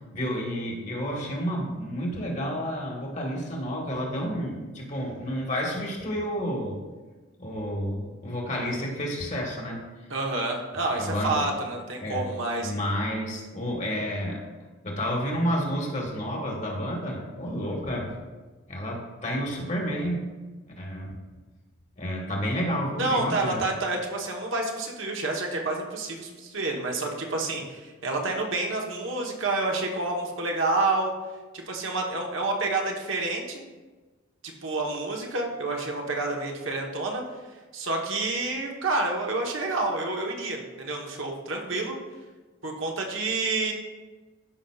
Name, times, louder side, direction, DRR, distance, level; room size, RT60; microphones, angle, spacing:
voice 1, 0.1-6.8 7.4-9.8 11.0-11.5 12.0-12.3 12.6-14.5 14.8-18.1 18.7-20.2 20.8-21.2 22.0-23.6, equal, 35° left, -1 dB, 1.5 m, -30 dB
voice 2, 10.1-12.7 23.0-31.1 31.5-33.6 34.4-37.2 37.7-42.0 42.6-43.7, right 2 dB, 70° right, 0 dB, 1.1 m, -29 dB
13.0 x 5.4 x 2.4 m, 1.3 s
head